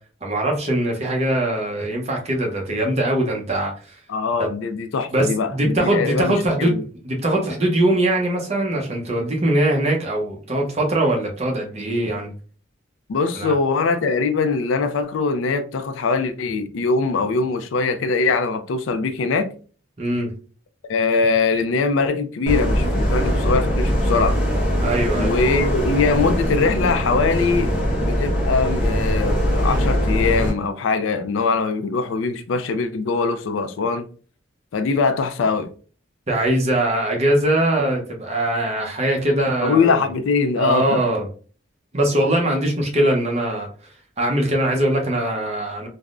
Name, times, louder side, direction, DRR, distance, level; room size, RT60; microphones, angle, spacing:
voice 1, 0.2-4.0 5.1-12.3 13.4-13.5 20.0-20.3 24.8-25.3 36.3-40.0 40.6-41.3 41.9-43.7 44.2-45.9, right 1 dB, 35° right, 0.7 m, -21 dB
voice 2, 4.1-6.8 13.1-19.5 20.9-24.4 25.2-27.7 28.0-34.1 34.7-35.7 39.6-41.1, left 4 dB, 85° left, 0.4 m, -22 dB
sound 1, 22.5-30.5, equal, 5° right, 0.9 m, -21 dB
3.4 x 2.0 x 2.4 m
head